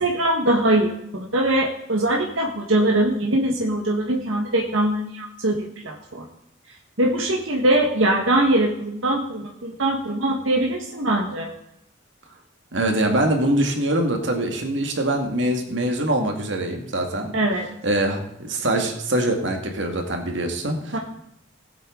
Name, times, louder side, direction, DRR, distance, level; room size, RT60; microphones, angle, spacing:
voice 1, 0.0-6.2 7.0-11.5 17.3-17.7 20.9-21.0, right 1 dB, 85° right, -1 dB, 1.6 m, -22 dB
voice 2, 12.7-17.3 17.8-21.0, right 1 dB, 70° right, 3 dB, 2.1 m, -23 dB
19.0 x 8.2 x 3.9 m, 0.79 s
head